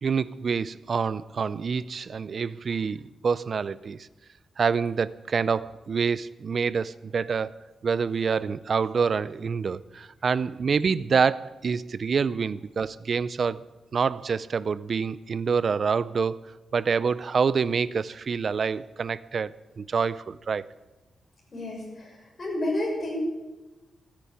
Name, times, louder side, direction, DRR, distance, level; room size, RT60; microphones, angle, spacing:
voice 1, 0.0-4.1 4.6-13.6 13.9-16.5 16.7-20.7, right 5 dB, 50° right, 0.5 m, -27 dB
voice 2, 21.5-22.1 22.4-23.2, left 1 dB, 35° left, 6.5 m, -30 dB
13.5 x 9.8 x 8.5 m
wide cardioid pair, 125°, 0 cm